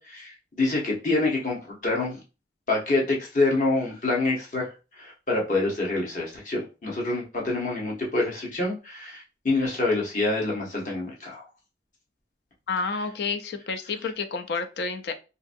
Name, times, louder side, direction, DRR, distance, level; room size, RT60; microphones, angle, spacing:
voice 1, 0.0-2.2 2.7-4.7 5.0-11.4, left 2 dB, 45° left, -2 dB, 1.0 m, -26 dB
voice 2, 12.7-15.1, left 4 dB, 70° left, 8 dB, 0.4 m, -30 dB
2.8 x 2.6 x 2.6 m, 0.31 s
head